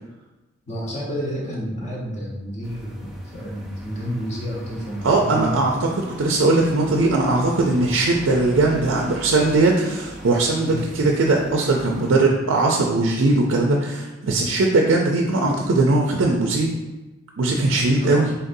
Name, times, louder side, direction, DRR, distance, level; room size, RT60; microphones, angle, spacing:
voice 1, 0.7-5.7 10.6-10.8 17.9-18.3, equal, 35° left, -4 dB, 0.9 m, -30 dB
sound 1, 2.6-12.2, equal, ahead, 0.4 m, -39 dB
voice 2, 5.0-16.7 17.4-18.3, right 2 dB, 75° right, 0 dB, 0.4 m, -19 dB
4.1 x 3.9 x 2.6 m, 1.1 s
head